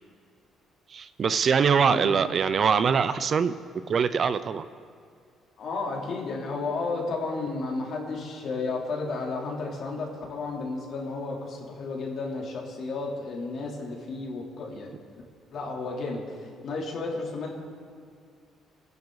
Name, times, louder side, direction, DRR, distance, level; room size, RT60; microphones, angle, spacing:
voice 1, 0.9-3.6 3.9-4.7, right 6 dB, 40° right, 13 dB, 0.5 m, -23 dB
voice 2, 1.7-2.2 5.6-14.9 15.5-17.5, left 3 dB, 55° left, -2 dB, 3.5 m, -33 dB
29.0 x 10.5 x 4.1 m, 2.2 s
cardioid pair, 125°, 0 cm